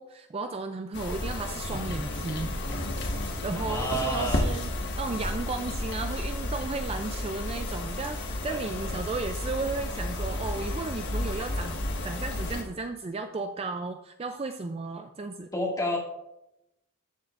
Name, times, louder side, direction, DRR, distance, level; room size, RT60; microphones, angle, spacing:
voice 1, 0.0-2.5 3.2-15.5, right 3 dB, 25° right, 7 dB, 0.3 m, -34 dB
sound 1, 0.9-12.6, left 1 dB, 50° left, 1.4 m, -32 dB
voice 2, 3.6-4.5 8.4-9.0 15.5-16.0, equal, 15° left, -2 dB, 2.1 m, -30 dB
13.0 x 8.0 x 2.5 m, 0.86 s
head